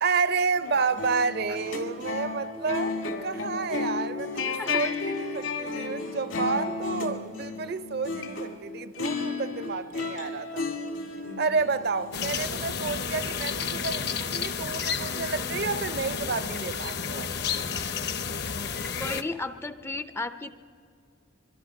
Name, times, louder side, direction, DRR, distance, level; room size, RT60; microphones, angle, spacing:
voice 1, 0.0-10.7 11.4-17.3, right 4 dB, 50° right, 0.5 m, -30 dB
sound 1, 0.5-8.5 8.9-13.8, left 4 dB, 75° left, 2.4 m, -33 dB
voice 2, 4.6-4.9 19.0-20.5, left 2 dB, 10° left, 0.4 m, -33 dB
sound 2, 12.1-19.2, left 6 dB, 50° left, 0.8 m, -31 dB
25.0 x 22.5 x 5.2 m
head